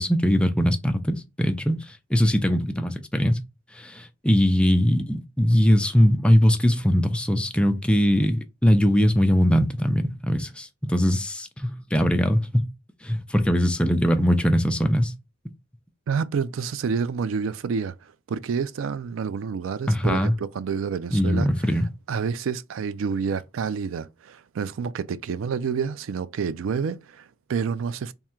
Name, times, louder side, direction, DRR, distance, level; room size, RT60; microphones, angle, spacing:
voice 1, 0.0-3.4 3.7-12.7 13.0-15.1 19.9-20.3 21.1-21.9, equal, 5° left, 0.4 m, -21 dB
voice 2, 16.1-21.8 22.1-28.1, right 6 dB, 85° right, 0.4 m, -29 dB
3.5 x 2.1 x 4.3 m
head